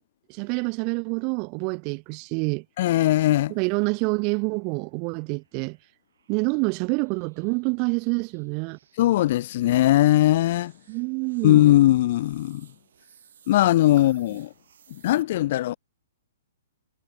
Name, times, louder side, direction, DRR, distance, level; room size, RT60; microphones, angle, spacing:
voice 1, 0.3-2.6 3.5-5.8 6.3-8.8 10.9-11.6, right 36 dB, 30° right, 0.8 m, -27 dB
voice 2, 2.8-3.5 9.0-10.7 11.4-12.7 13.5-14.5 15.0-15.8, left 14 dB, 45° left, 0.4 m, -19 dB
sound 1, 4.4-15.2, right 8 dB, 70° right, 5.7 m, -60 dB
hypercardioid pair, 160°, 0 cm